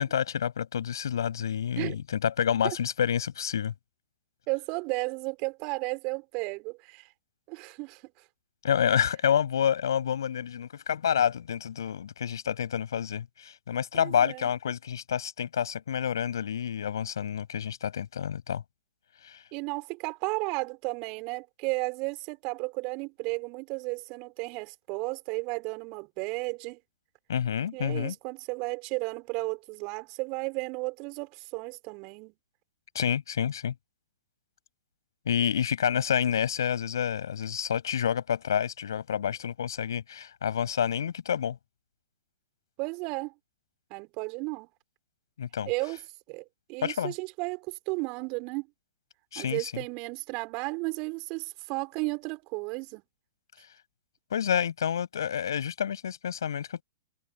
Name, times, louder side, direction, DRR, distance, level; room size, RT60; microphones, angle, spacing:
voice 1, 0.0-3.7 8.6-18.6 19.2-19.4 27.3-28.1 33.0-33.7 35.3-41.6 45.4-45.7 46.8-47.1 49.3-49.8 54.3-56.8, left 8 dB, 65° left, 6.9 m, -28 dB
voice 2, 4.5-7.1 7.5-8.0 13.9-14.5 19.5-26.8 27.7-32.3 42.8-43.3 43.9-44.7 45.7-46.0 46.3-48.7 49.4-53.0, right 29 dB, 40° right, 4.5 m, -34 dB
figure-of-eight pair, 115°, 2 cm